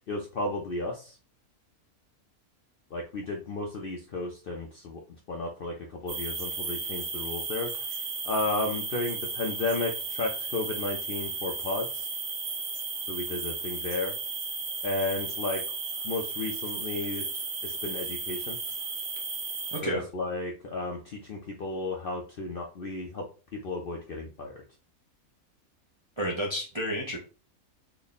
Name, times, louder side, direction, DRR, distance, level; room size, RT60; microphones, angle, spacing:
voice 1, 0.1-1.2 2.9-5.0 5.3-8.0 8.2-12.1 13.1-14.1 14.8-15.6 16.0-17.2 17.6-18.6 19.8-23.2 23.5-24.5, left 2 dB, 60° left, 1 dB, 0.6 m, -33 dB
sound 1, 6.1-19.8, right 4 dB, 55° right, 0.9 m, -34 dB
voice 2, 19.7-20.0 26.2-27.2, equal, 35° right, -3 dB, 0.5 m, -30 dB
3.4 x 2.2 x 4.0 m, 0.35 s
omnidirectional pair, 1.5 m